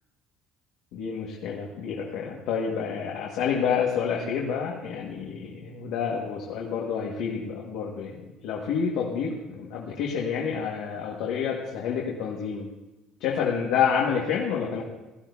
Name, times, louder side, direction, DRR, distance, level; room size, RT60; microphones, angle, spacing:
voice 1, 0.9-8.2 8.4-12.7 13.2-14.8, left 7 dB, 80° left, -3 dB, 1.8 m, -28 dB
17.5 x 13.5 x 2.7 m, 1.0 s
cardioid pair, 170°, 0 cm